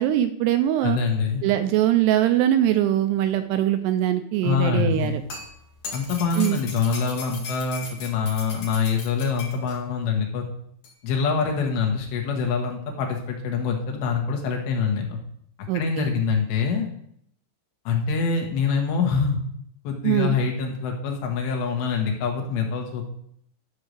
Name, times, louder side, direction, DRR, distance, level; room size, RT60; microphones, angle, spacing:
voice 1, 0.0-1.0 1.4-5.2 6.4-6.6 15.7-16.1 20.0-20.4, right 12 dB, 80° right, 8 dB, 2.6 m, -22 dB
voice 2, 0.8-1.5 4.4-5.2 5.9-10.4 11.0-15.2 15.7-16.9 17.9-19.4 19.9-23.0, left 5 dB, 80° left, 1 dB, 3.8 m, -25 dB
sound 1, 4.9-9.8 10.8-10.9, left 4 dB, 55° left, 3.3 m, -38 dB
12.5 x 4.8 x 6.7 m, 0.69 s
omnidirectional pair, 5.1 m